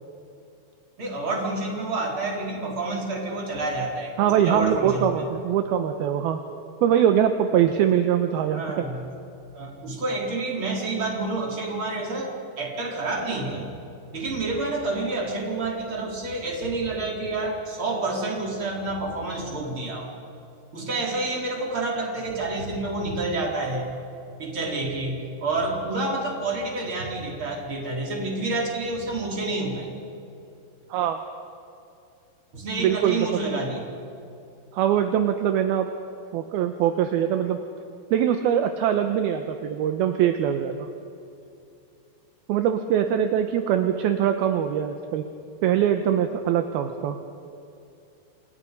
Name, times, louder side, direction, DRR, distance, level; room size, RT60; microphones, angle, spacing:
voice 1, 1.0-5.0 8.5-9.0 9.5-12.3 12.6-13.7 14.1-20.1 20.7-23.9 24.4-29.9 32.5-33.9, right 2 dB, 30° right, -1 dB, 4.8 m, -28 dB
voice 2, 4.2-6.4 6.8-8.9 30.9-31.2 32.8-33.4 34.7-35.9 36.3-37.6 38.1-40.9 42.5-45.2 45.6-47.2, right 9 dB, 75° right, 6 dB, 2.7 m, -22 dB
29.5 x 28.0 x 5.4 m, 2.6 s
omnidirectional pair, 4.8 m